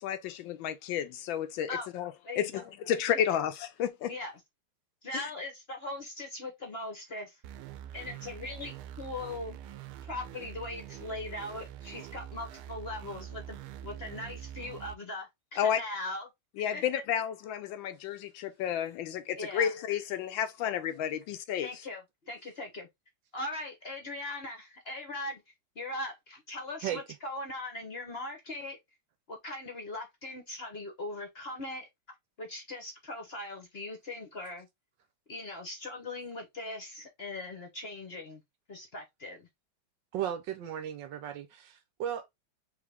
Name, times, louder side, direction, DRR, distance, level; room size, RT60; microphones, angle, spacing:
voice 1, 0.0-4.1 5.1-5.3 15.6-15.8 16.6-21.7, left 9 dB, 75° left, 1.2 m, -31 dB
voice 2, 2.2-2.6 4.1-4.3 5.0-7.4 7.9-9.6 10.0-16.3 16.7-16.8 19.3-19.7 21.6-22.9 23.3-25.4 25.7-28.8 29.3-31.9 32.4-34.7 35.3-38.4 38.7-39.5, left 2 dB, 40° left, 0.9 m, -40 dB
sound 1, 7.4-14.9, right 10 dB, 90° right, 1.5 m, -45 dB
voice 3, 40.1-42.3, right 10 dB, 70° right, 1.3 m, -35 dB
3.7 x 3.5 x 3.4 m
omnidirectional pair, 2.3 m